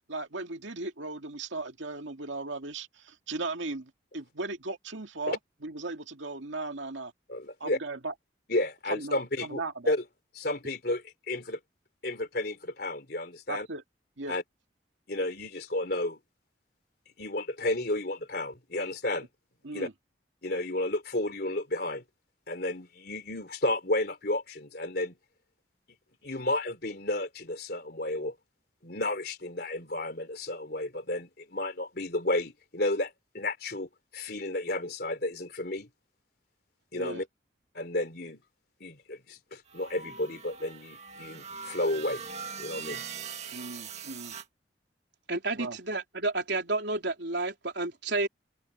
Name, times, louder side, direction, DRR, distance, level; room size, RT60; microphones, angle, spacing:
voice 1, 0.1-7.1 7.6-8.1 8.9-9.9 13.5-13.8 14.2-14.4 19.6-19.9 36.9-37.2 43.5-44.3 45.6-45.8, right 3 dB, 85° right, 2.3 m, -37 dB
voice 2, 7.3-7.8 8.5-9.6 9.9-10.0 10.3-11.6 12.0-13.7 14.3-14.4 15.1-16.2 17.2-19.3 19.7-19.9 20.4-22.0 22.5-25.2 26.2-28.4 28.8-35.9 36.9-37.3 37.7-38.4 38.8-42.2 42.6-43.0, left 1 dB, 55° left, 3.8 m, -32 dB
sound 1, 39.7-44.4, right 6 dB, 35° right, 1.6 m, -41 dB
voice 3, 45.3-48.3, right 2 dB, 65° right, 4.0 m, -30 dB
open air
head